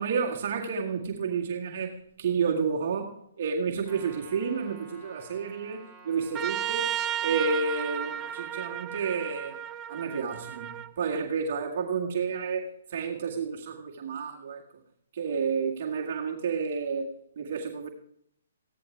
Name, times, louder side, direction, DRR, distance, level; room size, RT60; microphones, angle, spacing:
voice 1, 0.0-6.9 7.2-9.6 9.9-14.6 15.1-17.9, right 5 dB, 50° right, -1 dB, 2.0 m, -30 dB
Trumpet, 3.8-8.6, right 2 dB, 5° left, 3.1 m, -51 dB
Trumpet 2, 6.3-10.9, right 10 dB, 20° right, 0.4 m, -33 dB
16.0 x 10.5 x 3.5 m, 0.73 s
hypercardioid pair, 145°, 0 cm